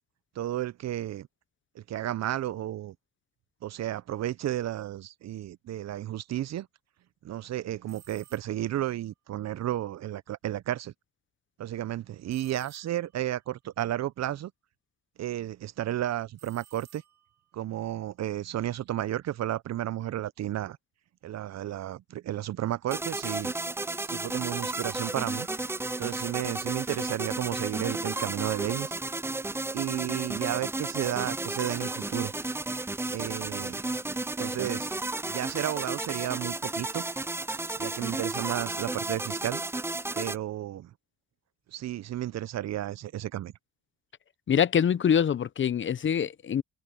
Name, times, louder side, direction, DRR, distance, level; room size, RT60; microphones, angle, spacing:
voice 1, 0.4-1.3 1.8-2.9 3.6-6.7 7.2-10.9 11.6-14.5 15.2-17.0 17.5-20.8 21.2-23.5 24.1-25.5 26.0-28.9 29.7-32.3 33.1-33.8 34.4-34.9 35.3-37.0 37.8-39.6 40.2-40.9 41.7-43.5, right 13 dB, 60° right, 0.7 m, -32 dB
sound 1, 7.8-8.8 12.3-13.3 16.3-17.5, right 10 dB, 85° right, 5.2 m, -57 dB
sound 2, 22.9-40.4, right 2 dB, 10° right, 0.4 m, -33 dB
voice 2, 44.5-46.6, left 8 dB, 40° left, 0.7 m, -24 dB
open air
cardioid pair, 90°, 30 cm